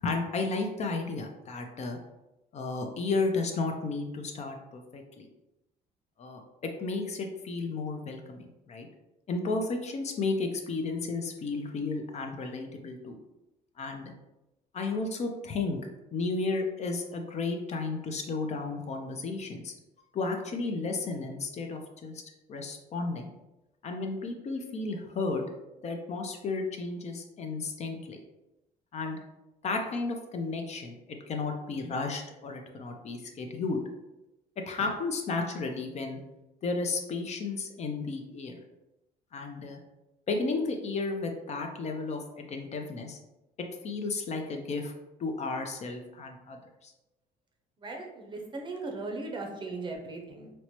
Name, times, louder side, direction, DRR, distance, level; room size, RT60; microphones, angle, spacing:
voice 1, 0.0-2.0 2.5-5.3 6.2-8.9 9.3-13.2 13.8-14.1 14.7-15.8 16.1-19.7 20.1-22.2 22.5-23.3 23.8-25.4 25.8-28.2 28.9-29.2 29.6-31.0 31.3-33.8 34.7-36.2 36.6-38.6 39.3-39.8 40.3-43.2 43.8-44.9 45.2-46.9, left 3 dB, 40° left, 3 dB, 0.5 m, -33 dB
voice 2, 47.8-50.5, right 3 dB, 30° right, 1 dB, 0.6 m, -38 dB
4.2 x 2.0 x 3.0 m, 0.95 s
cardioid pair, 110°, 17 cm